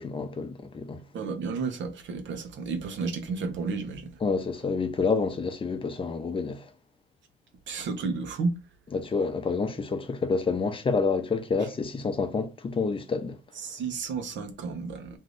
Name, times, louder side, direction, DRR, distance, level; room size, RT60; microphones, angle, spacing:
voice 1, 0.0-1.0 4.2-6.7 8.9-13.4, left 4 dB, 25° left, 0.6 m, -28 dB
voice 2, 1.1-4.2 7.7-8.6 13.6-15.2, right 4 dB, 70° right, 0.9 m, -32 dB
2.7 x 2.5 x 3.3 m
cardioid pair, 90°, 20 cm